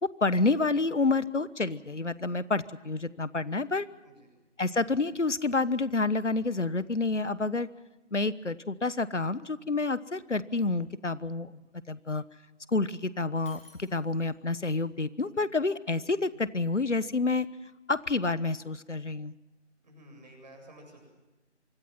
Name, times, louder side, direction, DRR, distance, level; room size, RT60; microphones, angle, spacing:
voice 1, 0.0-3.9 4.6-7.7 8.1-11.6 11.9-12.2 12.7-17.5 17.9-19.3, left 3 dB, 80° left, 17 dB, 1.2 m, -29 dB
Shatter, 13.5-14.5, left 2 dB, 50° left, 6.4 m, -57 dB
voice 2, 19.8-21.1, right 1 dB, 35° right, 3 dB, 7.9 m, -52 dB
25.0 x 24.0 x 5.8 m, 1.1 s
figure-of-eight pair, 160°, 36 cm